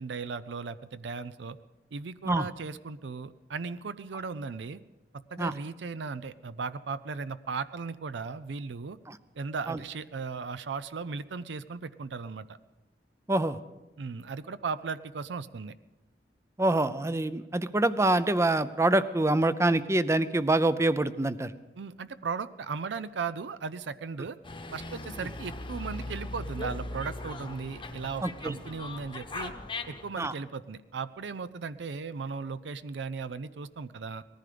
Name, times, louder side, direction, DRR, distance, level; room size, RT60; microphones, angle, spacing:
voice 1, 0.0-1.6 1.9-4.8 5.1-9.0 9.4-12.6 14.0-15.7 21.8-24.4 24.7-29.5 29.9-34.2, right 5 dB, 75° right, 14 dB, 0.5 m, -37 dB
voice 2, 16.6-21.5 28.2-28.5 30.2-30.3, right 2 dB, 15° right, 14 dB, 0.5 m, -25 dB
Dog, 24.4-30.1, left 2 dB, 30° left, 1.0 m, -39 dB
19.5 x 14.5 x 5.1 m, 1.1 s
head